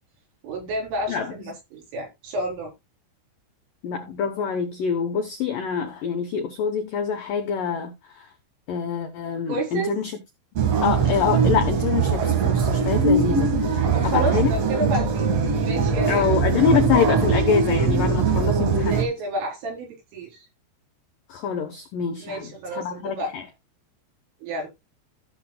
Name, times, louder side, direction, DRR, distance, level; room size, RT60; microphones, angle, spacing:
voice 1, 0.4-2.7 9.5-9.9 13.9-15.3 15.6-16.3 18.8-20.5 22.2-23.3 24.4-24.7, right 1 dB, 85° right, 6.8 m, -30 dB
voice 2, 3.8-8.3 8.7-10.1 10.8-14.5 16.1-19.0 21.3-22.5 22.7-23.4, left 7 dB, 85° left, 1.9 m, -25 dB
sound 1, 10.6-19.0, right 5 dB, 55° right, 1.9 m, -21 dB
15.0 x 7.1 x 2.3 m
omnidirectional pair, 5.5 m